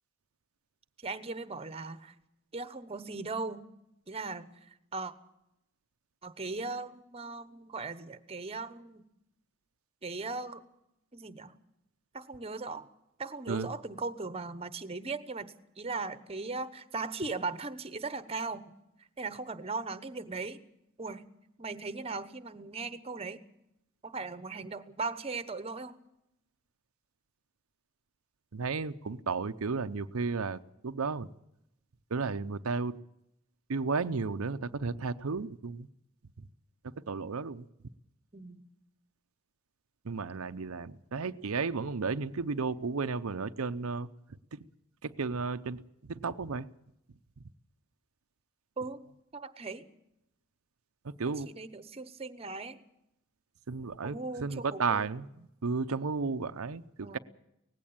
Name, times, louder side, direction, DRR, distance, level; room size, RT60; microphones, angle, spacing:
voice 1, 1.0-2.1 2.5-3.6 4.1-5.1 6.2-9.0 10.0-10.6 11.1-11.5 12.1-12.9 13.2-15.5 15.8-18.6 19.0-20.6 21.0-21.2 21.6-23.4 24.0-26.0 38.3-38.6 48.8-49.0 49.3-49.8 51.4-52.8 54.0-55.1 57.0-57.2, right 3 dB, 30° right, 13 dB, 1.0 m, -38 dB
voice 2, 28.5-31.3 32.1-32.9 33.7-35.9 37.1-37.7 40.0-44.1 44.5-44.6 45.0-45.8 46.1-46.7 51.0-51.5 53.7-57.2, right 4 dB, 85° right, 10 dB, 0.7 m, -33 dB
18.5 x 16.0 x 8.8 m, 0.83 s
head